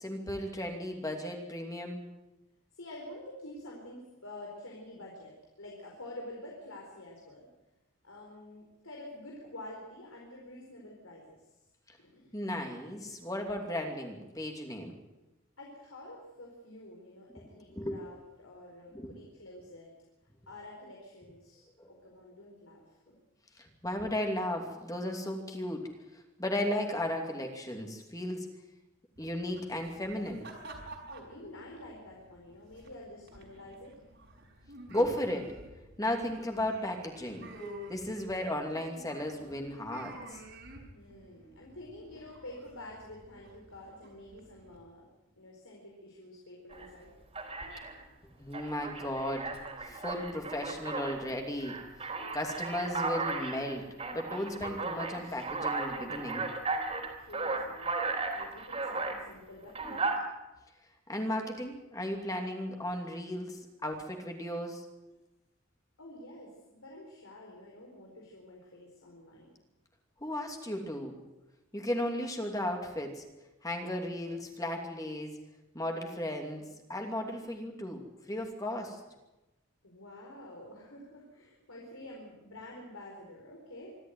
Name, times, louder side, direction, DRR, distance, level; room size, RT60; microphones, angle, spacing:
voice 1, 0.0-2.0 12.3-15.0 17.7-18.0 18.9-19.1 21.8-21.9 23.6-25.8 26.4-28.5 29.2-30.5 34.9-35.5 35.8-37.4 37.9-40.4 48.4-49.5 49.8-51.8 52.3-53.8 54.1-56.5 61.1-64.9 70.2-71.2 71.7-73.2 73.6-75.3 75.7-78.0 78.3-79.0, left 1 dB, 15° left, 3 dB, 2.7 m, -35 dB
voice 2, 2.7-7.5 8.0-11.6 12.0-12.3 15.6-19.9 20.5-23.2 31.1-34.0 40.9-45.1 45.4-47.1 55.2-55.4 57.2-58.0 58.3-60.1 66.0-69.6 79.8-84.0, left 1 dB, 90° left, -1 dB, 4.5 m, -48 dB
sound 1, 29.2-44.8, right 1 dB, 60° right, 5.2 m, -51 dB
Alarm, 46.7-46.9 47.3-48.0 48.5-51.2 51.6-59.2 59.7-60.2, right 3 dB, 30° right, 3.8 m, -35 dB
25.5 x 12.5 x 9.3 m, 1.0 s
head